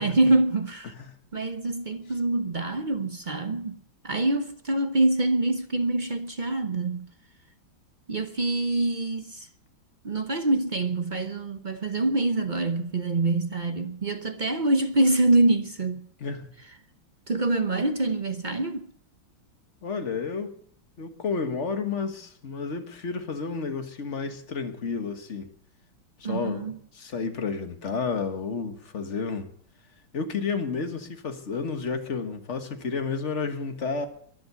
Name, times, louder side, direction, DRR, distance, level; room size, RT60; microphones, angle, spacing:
voice 1, 0.0-0.9 1.3-7.1 8.1-9.5 10.0-16.1 17.3-18.9 26.2-26.8, right 2 dB, 45° right, 0.6 m, -25 dB
voice 2, 16.2-16.5 19.8-20.5 21.0-25.5 26.2-26.6 26.9-29.5 30.1-34.1, left 5 dB, 40° left, 1.6 m, -31 dB
22.5 x 7.7 x 6.9 m
omnidirectional pair, 2.2 m